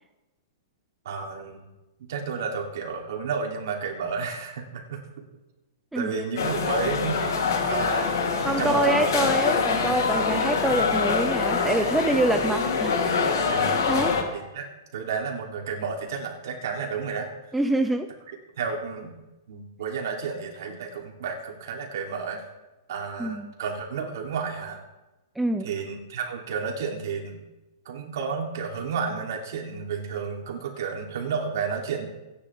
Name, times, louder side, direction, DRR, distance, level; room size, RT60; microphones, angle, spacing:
voice 1, 1.1-1.6 2.0-5.0 5.9-7.2 7.7-8.3 8.6-9.1 10.6-10.7 11.6-11.9 13.4-13.8 14.3-17.3 18.6-19.2 19.5-22.4 22.9-24.8 25.6-27.4 27.9-32.1, right 5 dB, 60° right, 0 dB, 3.4 m, -32 dB
voice 2, 5.9-6.2 8.4-13.3 13.9-14.2 17.5-18.1 23.2-23.5 25.4-25.7, right 2 dB, 5° right, 6 dB, 0.5 m, -26 dB
sound 1, 6.4-14.2, left 5 dB, 75° left, 3.5 m, -24 dB
26.0 x 10.5 x 3.7 m, 1.0 s
hypercardioid pair, 170°, 2 cm